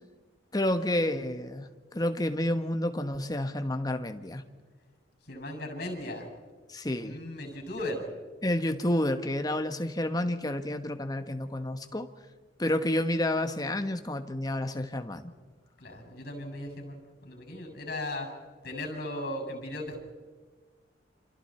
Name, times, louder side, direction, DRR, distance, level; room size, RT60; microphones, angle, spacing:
voice 1, 0.5-4.4 6.7-7.2 8.4-12.1 12.6-15.3, left 1 dB, 20° left, 7 dB, 1.2 m, -30 dB
voice 2, 5.2-6.3 7.0-8.1 15.8-18.3 18.6-20.0, left 1 dB, 55° left, 3 dB, 6.9 m, -37 dB
29.5 x 27.0 x 4.4 m, 1.3 s
head